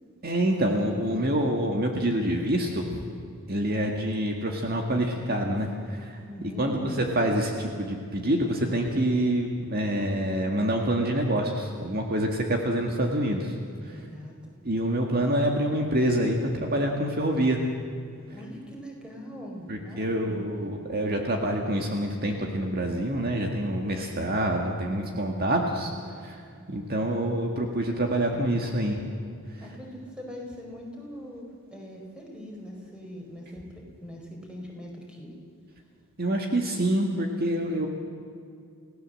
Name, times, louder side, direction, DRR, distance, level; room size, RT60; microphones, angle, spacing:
voice 1, 0.2-3.1 3.5-6.2 6.6-6.7 7.2-13.5 13.9-14.0 14.7-17.6 19.7-25.9 26.2-26.4 26.7-29.0 36.2-37.9, right 1 dB, 45° right, 2 dB, 2.0 m, -26 dB
voice 2, 6.3-7.0 13.9-14.5 18.3-20.7 29.6-35.3, equal, 5° right, 0 dB, 4.6 m, -41 dB
29.0 x 17.0 x 7.7 m, 2.4 s
head